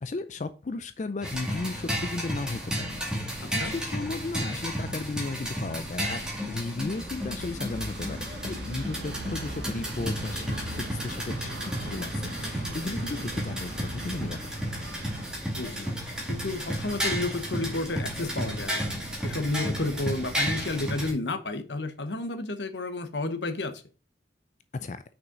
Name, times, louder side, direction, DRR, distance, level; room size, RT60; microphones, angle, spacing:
voice 1, 0.0-2.9 3.5-8.2 8.4-11.5 11.8-14.4 24.7-25.0, left 3 dB, 40° left, 0.4 m, -35 dB
sound 1, 1.2-21.1, equal, 5° right, 2.1 m, -33 dB
voice 2, 3.4-3.7 15.5-16.0 16.3-18.9 19.2-23.8, left 2 dB, 75° left, 1.1 m, -31 dB
sound 2, 6.9-15.3, right 1 dB, 70° right, 1.2 m, -39 dB
6.2 x 5.8 x 3.9 m
head